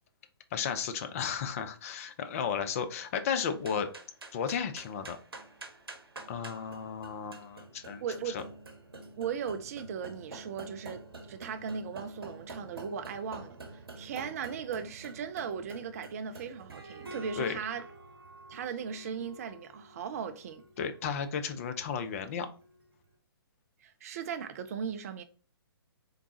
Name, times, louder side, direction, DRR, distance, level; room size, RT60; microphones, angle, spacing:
voice 1, 0.5-3.9 4.3-5.2 6.3-8.0 8.3-8.4 17.4-17.6 20.8-22.5, left 7 dB, 35° left, 0.5 m, -34 dB
sound 1, 3.3-22.8, right 2 dB, 70° right, 0.9 m, -48 dB
voice 2, 8.0-8.4 9.2-17.9 18.5-20.6 23.8-25.2, right 7 dB, 40° right, 0.4 m, -38 dB
3.7 x 3.5 x 2.8 m
figure-of-eight pair, 125°, 13 cm